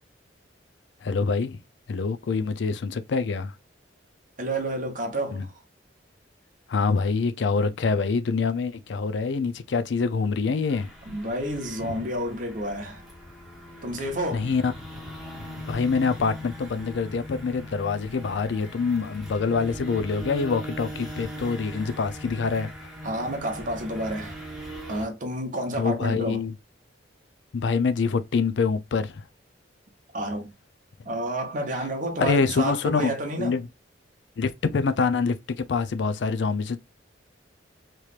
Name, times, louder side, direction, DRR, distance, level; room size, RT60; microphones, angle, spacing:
voice 1, 1.0-1.6 1.9-3.5 5.3-5.4 6.7-10.9 11.8-12.1 14.3-14.7 15.7-22.7 25.8-26.5 27.5-29.2 32.2-33.1 33.4-33.7 34.4-36.8, left 4 dB, 65° left, 0.4 m, -25 dB
voice 2, 4.4-5.6 11.1-13.0 13.8-14.5 23.0-24.4 24.9-26.4 30.1-30.5 31.0-33.6, right 1 dB, 45° right, 0.9 m, -30 dB
sound 1, 10.7-25.1, equal, ahead, 1.1 m, -40 dB
3.2 x 3.0 x 2.4 m
head